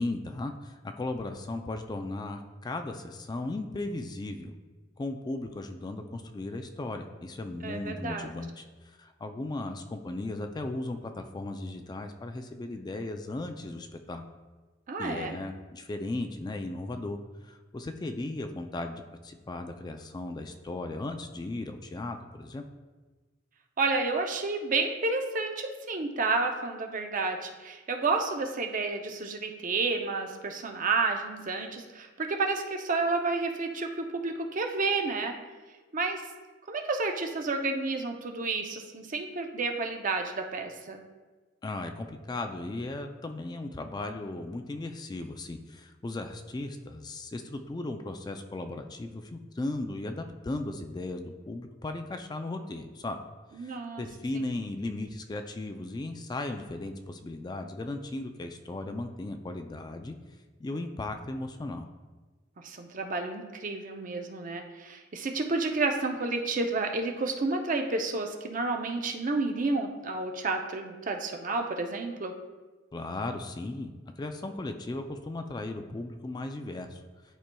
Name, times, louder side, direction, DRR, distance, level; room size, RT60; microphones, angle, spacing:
voice 1, 0.0-4.5 5.0-14.2 15.0-22.6 41.6-53.2 53.5-60.1 60.6-61.9 72.9-73.9 74.2-77.0, left 2 dB, 20° left, 6 dB, 0.3 m, -36 dB
voice 2, 7.6-8.3 14.9-15.4 23.8-35.4 35.9-36.2 36.7-41.0 53.6-54.0 54.3-54.5 62.6-72.4, right 3 dB, 45° right, 5 dB, 0.6 m, -30 dB
11.0 x 4.4 x 2.2 m, 1.3 s
head